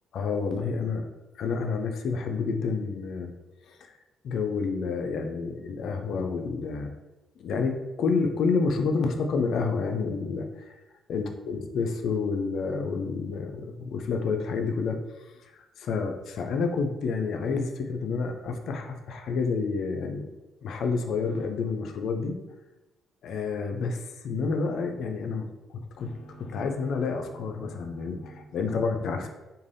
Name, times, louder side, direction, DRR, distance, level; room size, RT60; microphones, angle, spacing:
voice 1, 0.1-1.1 1.4-3.3 3.7-3.9 4.2-6.9 7.4-10.7 11.1-20.3 20.6-22.4 23.2-29.3, left 4 dB, 70° left, 5 dB, 0.3 m, -29 dB
2.5 x 2.2 x 3.2 m, 1.1 s
cardioid pair, 90°, 0 cm